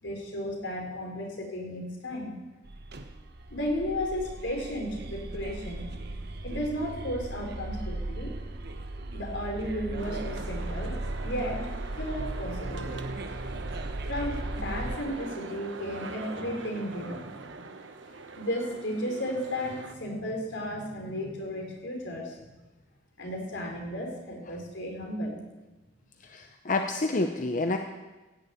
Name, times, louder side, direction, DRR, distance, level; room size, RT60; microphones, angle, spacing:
voice 1, 0.0-2.4 3.5-5.9 6.4-8.3 9.1-11.7 12.0-13.1 14.0-17.6 18.4-22.4 23.2-25.4, equal, 80° left, 1 dB, 3.9 m, -34 dB
psycho sample, 2.6-15.0, right 2 dB, 60° right, 1.1 m, -37 dB
sound 1, 10.0-20.0, right 3 dB, 85° right, 1.1 m, -42 dB
voice 2, 26.2-27.8, left 2 dB, 45° left, 4 dB, 0.8 m, -28 dB
16.0 x 7.1 x 8.6 m, 1.1 s
head